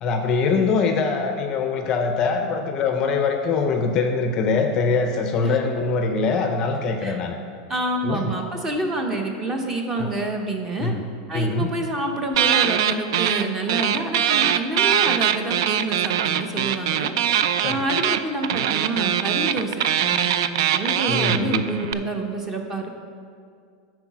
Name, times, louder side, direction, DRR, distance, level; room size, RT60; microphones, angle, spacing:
voice 1, 0.0-7.4 8.0-8.3 10.0-10.1 10.8-11.0 11.3-11.7 17.6-17.8 21.1-21.6, left 4 dB, 25° left, 5 dB, 0.5 m, -23 dB
voice 2, 7.7-10.9 11.3-17.1 17.6-22.9, right 2 dB, 15° right, 3 dB, 0.6 m, -28 dB
sound 1, 12.3-13.4 13.7-21.9, right 10 dB, 65° right, 0.3 m, -22 dB
9.6 x 4.6 x 5.9 m, 2.3 s
supercardioid pair, 175°, 2 cm